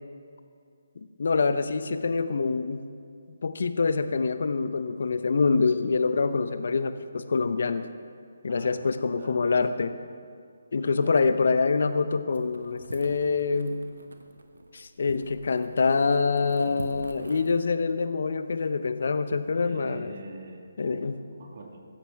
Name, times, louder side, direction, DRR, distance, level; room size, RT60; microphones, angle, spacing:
voice 1, 1.0-2.8 3.4-7.9 8.4-9.9 10.7-13.8 14.7-20.1 20.8-21.1, left 4 dB, 60° left, 11 dB, 0.8 m, -25 dB
voice 2, 8.5-9.8 10.7-11.7 19.5-21.8, right 2 dB, 50° right, 0 dB, 2.1 m, -46 dB
sound 1, 12.3-17.6, right 2 dB, 80° right, 1.2 m, -44 dB
16.0 x 13.0 x 3.6 m, 2.3 s
figure-of-eight pair, 150°, 0 cm